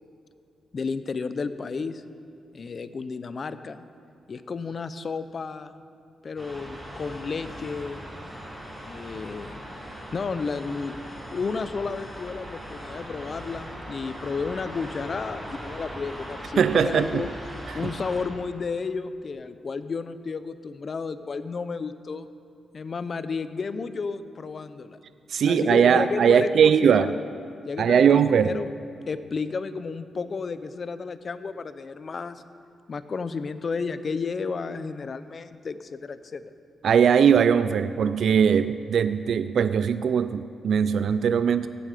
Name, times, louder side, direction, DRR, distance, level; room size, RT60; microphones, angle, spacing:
voice 1, 0.7-2.0 2.5-3.8 4.3-5.8 6.2-8.1 8.8-9.6 10.1-11.0 11.3-17.3 17.7-22.3 22.7-25.0 25.4-27.2 27.6-28.7 29.1-32.4 32.9-36.5, left 4 dB, 45° left, 13 dB, 0.5 m, -32 dB
sound 1, 6.4-18.2, equal, 5° right, 3.1 m, -39 dB
voice 2, 16.6-17.3 17.7-17.8 25.3-27.2 27.8-28.6 36.8-41.7, right 7 dB, 70° right, 12 dB, 0.3 m, -20 dB
15.5 x 9.1 x 4.9 m, 2.4 s
cardioid pair, 120°, 0 cm